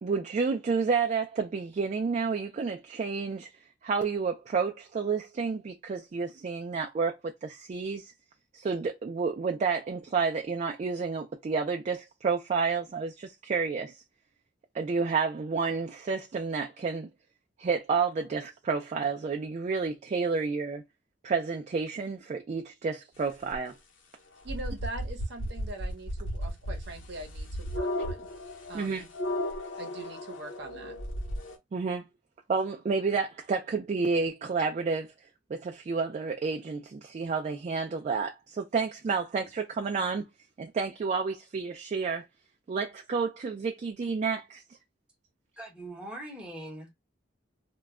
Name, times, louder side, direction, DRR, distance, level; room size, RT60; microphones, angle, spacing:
voice 1, 0.0-3.5 3.8-7.1 7.4-8.1 8.5-14.0 14.7-17.1 17.6-20.8 21.2-23.7 28.7-29.0 31.7-32.1 32.5-35.1 35.5-40.2 40.6-42.2 42.7-44.6, right 5 dB, 35° right, 0.3 m, -30 dB
sound 1, 23.5-23.6 24.5-31.6, equal, 85° left, 0.8 m, -35 dB
voice 2, 24.4-28.3 28.7-29.1 29.8-30.9, right 2 dB, 60° right, 0.7 m, -42 dB
voice 3, 45.6-47.0, right 1 dB, 5° right, 0.7 m, -41 dB
2.2 x 2.0 x 3.5 m
head